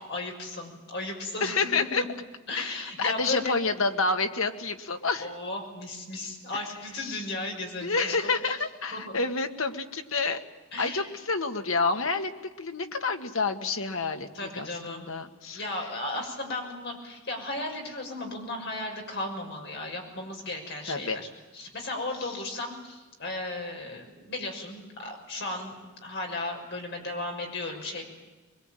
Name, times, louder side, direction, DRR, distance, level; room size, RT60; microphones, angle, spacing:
voice 1, 0.0-2.1 2.5-3.5 5.2-8.3 8.9-9.2 10.7-11.1 14.3-15.1 15.5-21.3 21.5-28.2, left 2 dB, 50° left, 2 dB, 6.3 m, -35 dB
voice 2, 1.4-2.0 2.5-5.3 7.0-7.2 7.8-10.4 10.8-12.3 12.6-15.6 20.9-21.2, left 4 dB, 70° left, 6 dB, 1.8 m, -29 dB
23.0 x 22.0 x 9.2 m, 1.2 s
head